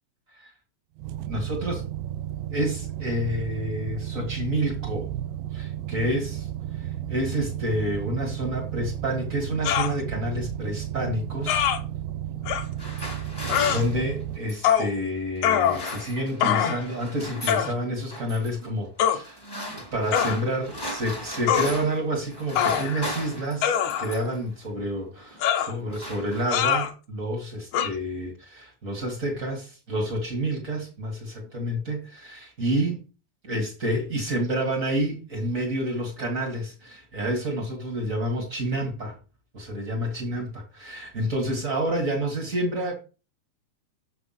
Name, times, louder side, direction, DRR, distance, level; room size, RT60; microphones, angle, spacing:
sound 1, 1.0-14.4, right 11 dB, 90° right, 2.0 m, -33 dB
voice 1, 1.3-1.8 2.5-5.1 5.5-11.7 12.8-13.2 13.5-19.4 19.7-33.0 33.4-39.2 39.5-42.9, right 1 dB, 70° right, 0.7 m, -29 dB
sound 2, 9.6-9.9 11.5-11.8 12.5-12.6 13.5-13.8 14.6-14.9 15.4-16.0 16.4-16.8 17.5-17.7 19.0-19.2 20.1-20.4 21.5-21.7 22.6-23.1 23.6-24.2 25.4-25.7 26.5-26.9 27.7-27.9, left 9 dB, 80° left, 1.7 m, -23 dB
sound 3, 12.6-14.8 15.5-16.5 16.7-17.7 18.1-18.5 19.2-22.0 22.3-24.4 25.2-25.4 25.7-26.8, equal, 35° left, 0.4 m, -37 dB
7.1 x 6.0 x 5.7 m
omnidirectional pair, 4.7 m